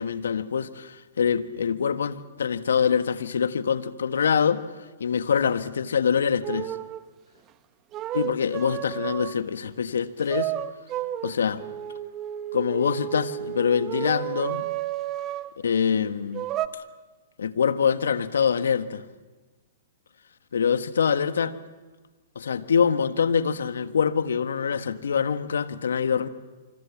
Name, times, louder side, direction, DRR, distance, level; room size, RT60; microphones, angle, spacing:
voice 1, 0.0-4.6 5.0-6.7 8.1-10.5 11.2-11.6 12.5-14.7 15.6-16.4 17.4-19.0 20.5-21.6 22.3-26.3, left 7 dB, 75° left, 1.4 m, -24 dB
sound 1, 6.4-7.0 7.9-9.5 10.3-15.6 16.3-16.7, right 12 dB, 30° right, 1.1 m, -32 dB
27.0 x 25.5 x 7.3 m
hypercardioid pair, 120°, 0 cm